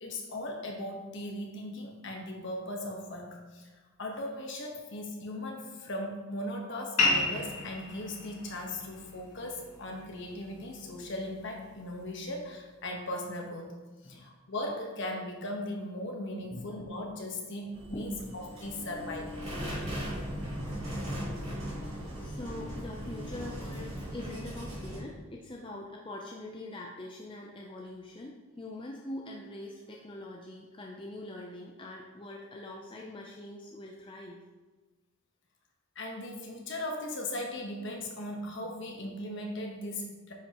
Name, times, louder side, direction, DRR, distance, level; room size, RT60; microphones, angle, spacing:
voice 1, 0.0-3.7 4.0-13.7 14.0-19.3 35.9-40.3, left 1 dB, 55° left, 1 dB, 1.2 m, -38 dB
sound 1, 7.0-12.0, left 3 dB, 85° left, 2.2 m, -34 dB
sound 2, 17.7-25.0, equal, 30° right, 2.5 m, -38 dB
voice 2, 17.9-18.4 22.2-34.4, left 1 dB, 25° left, -1 dB, 0.5 m, -43 dB
9.8 x 5.4 x 3.0 m, 1.3 s
head